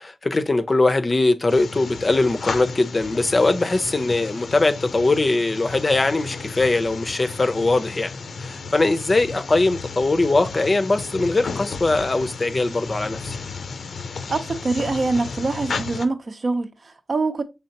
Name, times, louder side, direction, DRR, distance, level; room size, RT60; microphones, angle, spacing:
voice 1, 0.0-8.1 8.4-13.4, left 2 dB, 35° left, 0.5 m, -21 dB
sound 1, 1.5-16.1, left 4 dB, 90° left, 0.5 m, -33 dB
voice 2, 14.3-17.4, right 3 dB, 55° right, 0.7 m, -24 dB
5.6 x 3.4 x 2.8 m
wide cardioid pair, 100°, 0 cm